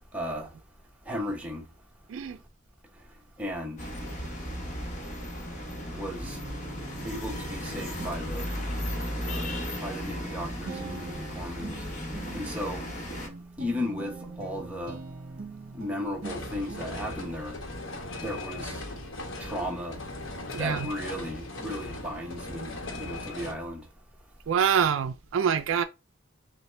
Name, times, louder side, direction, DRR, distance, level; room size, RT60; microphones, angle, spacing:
voice 1, 0.1-0.5 1.1-1.6 3.4-3.8 5.8-6.4 7.0-8.6 9.2-11.9 12.3-12.9 13.6-15.0 15.7-17.6 18.2-18.8 19.4-20.0 20.5-23.8, left 1 dB, 5° right, 0.8 m, -35 dB
sound 1, 3.8-13.3, equal, 35° left, 1.0 m, -35 dB
Guitar, 6.2-17.1, right 3 dB, 45° right, 0.9 m, -44 dB
sound 2, 16.2-23.5, left 2 dB, 65° left, 0.9 m, -38 dB
voice 2, 24.5-25.8, right 7 dB, 65° right, 0.3 m, -25 dB
5.5 x 2.1 x 3.3 m
head